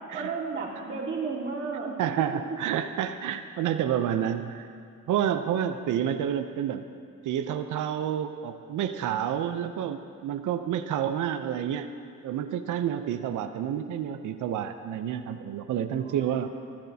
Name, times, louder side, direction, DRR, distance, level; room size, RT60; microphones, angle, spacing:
voice 1, 0.1-1.9 2.3-2.6 15.9-16.5, right 4 dB, 35° right, -6 dB, 2.9 m, -33 dB
voice 2, 2.0-4.7 5.1-6.9 7.2-12.0 12.2-16.5, right 9 dB, 65° right, 8 dB, 0.6 m, -29 dB
15.0 x 12.0 x 2.8 m, 2.3 s
cardioid pair, 100°, 32 cm